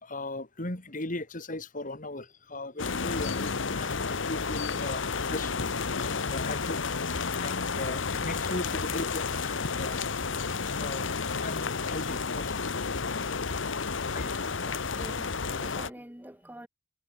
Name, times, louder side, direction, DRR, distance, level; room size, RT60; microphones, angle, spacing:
voice 1, 0.0-5.7 6.0-6.8 7.1-10.0 10.8-11.1 11.4-12.5 14.1-14.4, left 2 dB, 45° left, 3.1 m, -38 dB
sound 1, 2.8-15.9, left 5 dB, 75° left, 1.1 m, -31 dB
voice 2, 14.6-16.7, right 1 dB, 10° right, 1.6 m, -46 dB
head